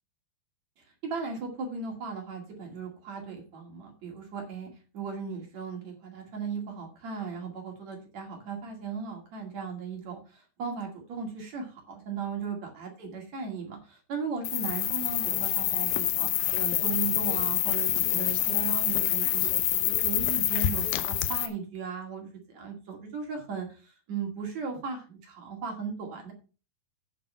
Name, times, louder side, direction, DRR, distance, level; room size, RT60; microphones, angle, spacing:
voice 1, 0.8-4.7 4.9-16.3 16.6-19.5 19.8-26.3, right 5 dB, 50° right, 2 dB, 3.1 m, -37 dB
sound 1, 14.4-21.5, left 13 dB, 75° left, 2.4 m, -27 dB
9.0 x 7.6 x 5.5 m, 0.34 s
omnidirectional pair, 4.5 m